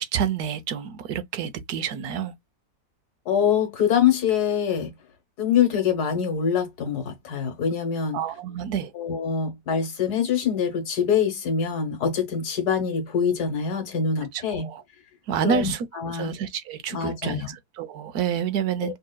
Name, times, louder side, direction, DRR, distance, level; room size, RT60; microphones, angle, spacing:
voice 1, 0.0-2.3 8.1-8.9 14.3-14.8 15.3-15.9 16.1-19.0, right 8 dB, 80° right, 1.3 m, -28 dB
voice 2, 3.3-4.9 5.4-8.2 8.9-14.7 15.4-16.3 16.9-17.5 18.8-18.9, left 7 dB, 85° left, 1.8 m, -24 dB
5.3 x 2.9 x 2.2 m
omnidirectional pair, 1.6 m